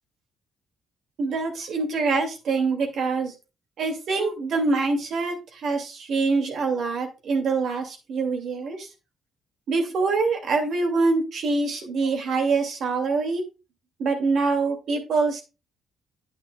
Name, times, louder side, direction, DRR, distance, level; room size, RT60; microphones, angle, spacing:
voice 1, 1.2-3.3 3.8-8.9 9.7-13.4 14.0-15.4, right 4 dB, 65° right, 3 dB, 2.4 m, -25 dB
9.0 x 8.9 x 2.3 m, 0.29 s
cardioid pair, 90°, 0 cm